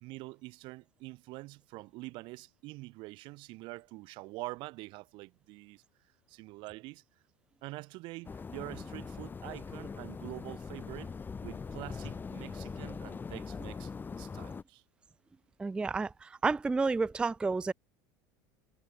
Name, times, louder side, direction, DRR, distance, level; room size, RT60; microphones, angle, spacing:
voice 1, 0.0-5.8 6.3-7.0 7.6-11.2 11.4-13.9 14.2-14.8, right 22 dB, 60° right, 0.7 m, -45 dB
sound 1, 8.2-14.6, left 5 dB, 20° left, 1.9 m, -42 dB
voice 2, 15.6-17.7, right 4 dB, 10° right, 0.3 m, -30 dB
supercardioid pair, 105°, 10 cm